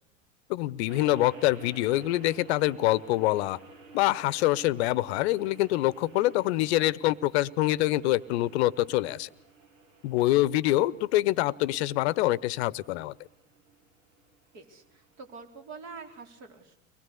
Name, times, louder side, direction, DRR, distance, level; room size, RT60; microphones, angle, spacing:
voice 1, 0.5-3.6 3.9-9.3 10.0-13.1, left 16 dB, 55° left, 21 dB, 0.9 m, -25 dB
sound 1, 0.9-16.2, right 3 dB, 75° right, 3.0 m, -53 dB
voice 2, 14.5-16.9, right 4 dB, 45° right, 5 dB, 4.2 m, -46 dB
24.0 x 20.5 x 8.4 m, 0.78 s
figure-of-eight pair, 90°, 39 cm